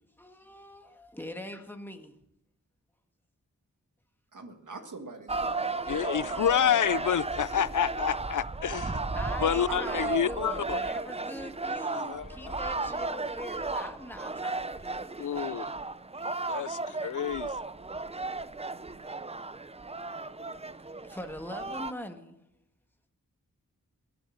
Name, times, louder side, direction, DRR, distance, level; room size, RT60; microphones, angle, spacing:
voice 1, 0.2-2.2 9.1-15.1 21.0-22.4, left 1 dB, 5° left, 1.6 m, -42 dB
voice 2, 4.3-7.1 9.7-11.0 12.0-12.9 18.5-19.0, right 3 dB, 65° right, 1.8 m, -45 dB
sound 1, 5.3-21.9, right 3 dB, 20° right, 0.6 m, -34 dB
voice 3, 5.9-9.0 9.4-10.8 11.9-12.6 15.2-15.7 16.5-17.5, left 9 dB, 65° left, 0.5 m, -29 dB
21.5 x 7.7 x 6.4 m
wide cardioid pair, 55°, 33 cm